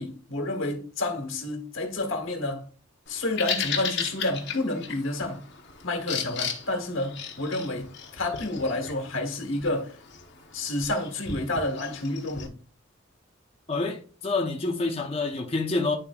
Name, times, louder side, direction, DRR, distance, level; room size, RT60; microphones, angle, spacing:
voice 1, 0.0-2.7 3.1-5.5 5.8-10.0 10.5-12.5, left 2 dB, 80° left, 1.6 m, -30 dB
Bird vocalization bird call bird song, 3.1-12.5, left 7 dB, 55° left, 1.0 m, -36 dB
voice 2, 13.7-16.0, left 3 dB, 30° left, 0.8 m, -27 dB
10.5 x 3.9 x 2.4 m
head